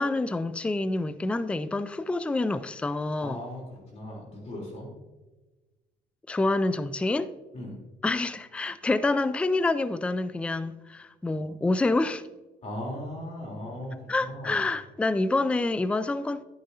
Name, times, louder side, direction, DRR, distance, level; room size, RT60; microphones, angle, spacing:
voice 1, 0.0-3.4 6.3-7.3 8.0-12.2 14.1-16.4, left 2 dB, 5° left, 0.3 m, -27 dB
voice 2, 3.2-4.9 7.5-7.8 12.6-14.6, left 1 dB, 40° left, 3.6 m, -38 dB
11.0 x 10.0 x 2.8 m
cardioid pair, 110°, 17 cm